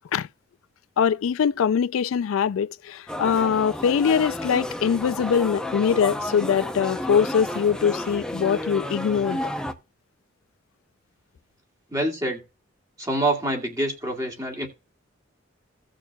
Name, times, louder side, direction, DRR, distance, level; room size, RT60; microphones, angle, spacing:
voice 1, 1.0-9.4, left 7 dB, 85° left, 0.3 m, -22 dB
sound 1, 3.1-9.7, left 1 dB, 5° left, 0.7 m, -31 dB
voice 2, 11.9-12.4 13.0-14.7, right 1 dB, 20° right, 2.2 m, -26 dB
17.0 x 6.4 x 2.3 m
head